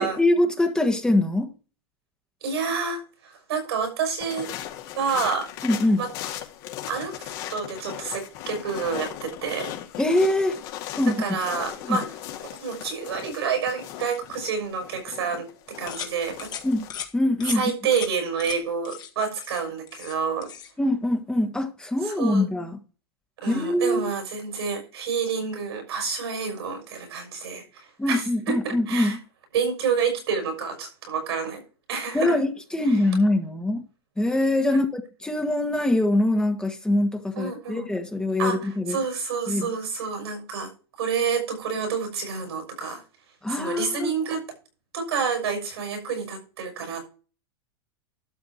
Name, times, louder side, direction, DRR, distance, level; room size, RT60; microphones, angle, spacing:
voice 1, 0.0-1.5 5.6-6.0 10.0-10.6 11.0-11.4 11.9-12.0 16.6-16.9 17.1-17.6 20.8-22.8 23.5-24.1 28.0-29.2 32.1-33.8 34.2-39.0 39.5-39.7 43.4-44.1, left 1 dB, 5° left, 1.5 m, -23 dB
voice 2, 2.4-4.5 5.0-5.5 6.0-6.1 6.9-9.7 11.1-12.2 12.4-16.5 17.5-20.5 22.0-22.5 23.4-29.2 29.5-31.6 31.9-32.4 32.8-33.0 34.7-34.8 37.3-37.9 38.4-40.7 41.0-43.0 43.5-44.4 44.9-47.1, right 5 dB, 80° right, 6.1 m, -29 dB
sound 1, 4.2-16.9, left 12 dB, 55° left, 2.4 m, -38 dB
sound 2, 15.9-16.1 16.4-16.6 16.9-17.1 17.4-17.6 17.9-18.1 18.4-18.6 18.8-19.1 19.4-20.2 20.4-20.7, left 9 dB, 30° left, 1.8 m, -36 dB
12.0 x 6.8 x 4.6 m
hypercardioid pair, 120°, 13 cm